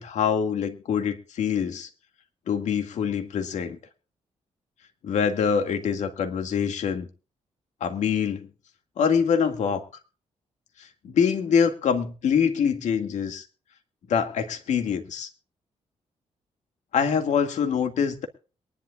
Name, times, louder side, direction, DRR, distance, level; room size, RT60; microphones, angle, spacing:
voice 1, 0.0-1.9 2.5-3.8 5.0-7.1 7.8-8.4 9.0-9.8 11.0-13.4 14.1-15.3 16.9-18.3, left 7 dB, 80° left, 6 dB, 2.1 m, -24 dB
23.0 x 11.5 x 2.4 m, 0.35 s
cardioid pair, 105°, 12 cm